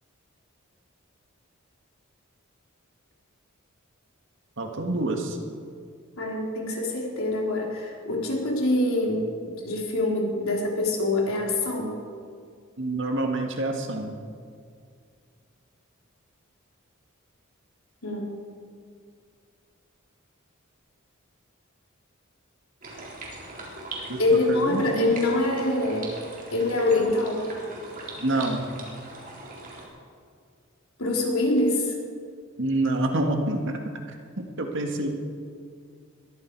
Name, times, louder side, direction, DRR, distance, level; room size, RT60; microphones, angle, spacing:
voice 1, 4.6-5.4 12.8-14.2 24.1-25.2 28.2-28.6 32.6-33.8 34.1-34.2 34.6-35.1, right 2 dB, 60° right, 3 dB, 1.9 m, -27 dB
voice 2, 6.2-9.3 9.6-11.9 18.0-18.3 24.2-26.1 26.5-27.5 31.0-31.9, left 2 dB, 90° left, -1 dB, 3.6 m, -25 dB
sound 1, 22.8-29.9, right 2 dB, 40° right, 3.8 m, -40 dB
21.0 x 14.0 x 4.8 m, 2.2 s
head